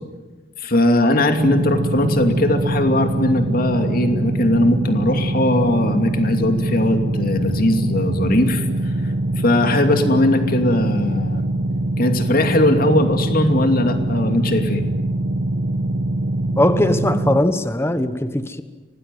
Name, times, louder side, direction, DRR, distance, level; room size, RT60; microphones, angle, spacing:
voice 1, 0.6-8.7 9.4-11.4 12.0-14.8, left 1 dB, 50° left, 6 dB, 2.6 m, -19 dB
sound 1, 1.4-17.4, right 1 dB, 70° right, 1.5 m, -23 dB
voice 2, 16.6-18.6, left 1 dB, 15° left, 10 dB, 1.3 m, -19 dB
25.5 x 19.0 x 9.3 m, 1.2 s
head